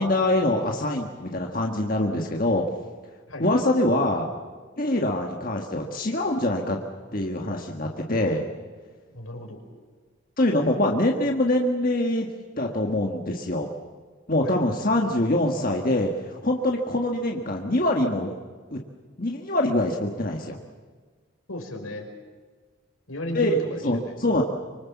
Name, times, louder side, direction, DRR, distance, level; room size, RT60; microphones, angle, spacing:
voice 1, 0.0-2.6 3.4-4.3 4.8-6.8 7.1-8.5 10.4-12.3 12.6-13.7 14.3-18.3 18.7-18.8 19.2-20.6 23.3-23.6 23.8-24.4, left 1 dB, 40° left, 1 dB, 1.7 m, -24 dB
voice 2, 3.3-3.6 9.1-9.6 14.4-14.6 21.5-22.1 23.1-24.1, left 1 dB, 80° left, 3 dB, 4.9 m, -34 dB
25.0 x 25.0 x 7.4 m, 1.5 s
head